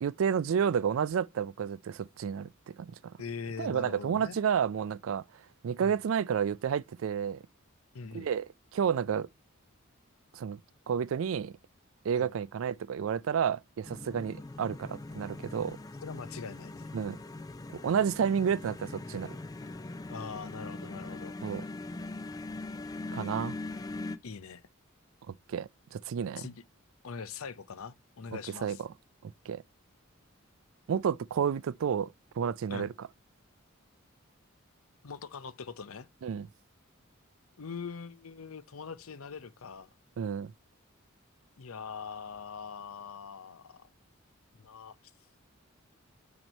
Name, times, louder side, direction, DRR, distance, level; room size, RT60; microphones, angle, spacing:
voice 1, 0.0-2.9 3.6-5.2 5.6-7.4 8.1-8.5 8.7-9.3 10.3-10.6 10.9-11.5 12.0-15.8 16.9-17.2 17.7-19.4 21.4-21.6 23.1-23.6 25.3-26.5 28.6-28.9 29.2-29.6 30.9-33.1 36.2-36.5 40.2-40.5, right 7 dB, 70° right, 0.3 m, -31 dB
voice 2, 3.2-4.4 5.8-5.9 7.9-8.3 12.1-12.3 16.0-16.9 20.1-21.4 24.2-24.6 26.4-26.6 27.0-28.8 32.7-32.9 35.0-36.1 37.6-39.9 41.6-43.9 44.6-45.0, left 5 dB, 90° left, 0.6 m, -42 dB
sound 1, 13.8-24.2, left 2 dB, 15° left, 0.4 m, -41 dB
9.0 x 3.0 x 5.3 m
head